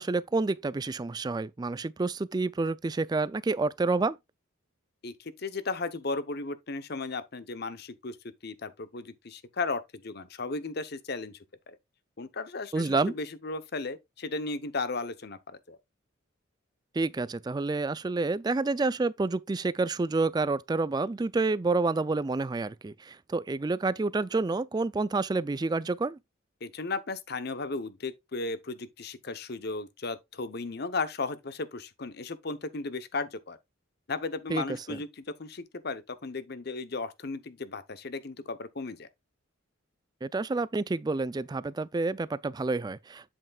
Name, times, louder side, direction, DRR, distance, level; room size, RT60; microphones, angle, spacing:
voice 1, 0.0-4.2 12.7-13.1 16.9-26.2 34.5-34.6 34.9-35.0 40.2-43.3, right 3 dB, 20° right, 0.3 m, -29 dB
voice 2, 5.0-8.2 8.4-11.4 11.7-11.8 12.2-15.8 26.6-33.6 34.1-39.1, left 3 dB, 50° left, 0.8 m, -35 dB
8.0 x 7.4 x 2.3 m
head